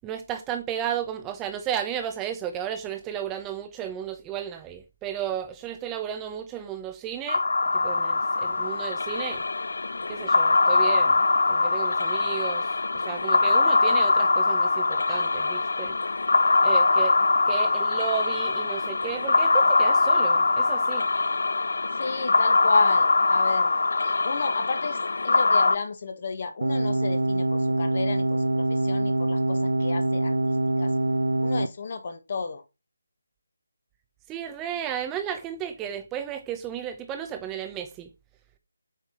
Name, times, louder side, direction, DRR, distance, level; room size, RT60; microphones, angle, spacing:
voice 1, 0.0-7.4 7.7-9.4 10.1-11.2 11.5-12.7 13.0-16.0 16.6-17.2 17.5-21.1 34.3-38.1, right 9 dB, 10° right, 0.8 m, -33 dB
sound 1, 7.3-25.8, left 3 dB, 65° left, 0.4 m, -22 dB
voice 2, 21.9-25.0 25.2-30.4 30.8-30.9 31.4-32.6, left 4 dB, 40° left, 1.4 m, -32 dB
sound 2, 26.6-31.7, right 2 dB, 80° right, 0.5 m, -24 dB
8.2 x 4.4 x 4.3 m
figure-of-eight pair, 165°, 0 cm